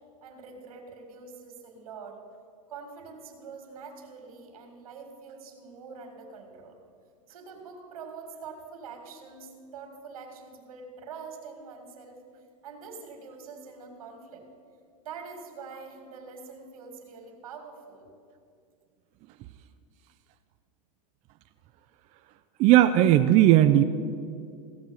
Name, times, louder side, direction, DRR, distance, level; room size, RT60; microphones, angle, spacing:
voice 1, 0.2-2.2 2.7-6.8 7.3-12.2 12.6-14.5 15.0-18.1, right 5 dB, 85° right, 3 dB, 2.4 m, -44 dB
voice 2, 22.6-23.8, right 13 dB, 40° right, 8 dB, 0.5 m, -17 dB
16.0 x 6.2 x 7.1 m, 2.3 s
hypercardioid pair, 120°, 18 cm